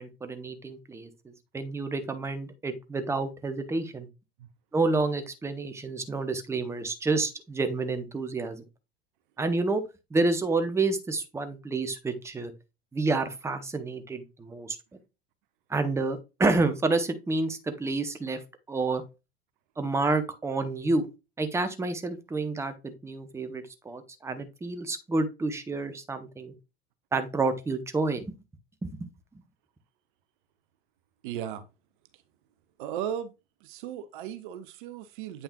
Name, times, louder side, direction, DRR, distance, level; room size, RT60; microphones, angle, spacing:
voice 1, 0.0-4.1 4.7-8.6 9.4-9.8 10.1-12.5 12.9-14.8 15.7-18.4 18.7-19.0 19.8-21.1 21.4-26.5 27.1-28.3 28.8-28.9, right 3 dB, 10° right, 0.8 m, -29 dB
voice 2, 31.2-31.7 32.8-33.3 33.6-35.4, right 10 dB, 55° right, 0.7 m, -36 dB
8.4 x 5.5 x 2.3 m
figure-of-eight pair, 75°, 30 cm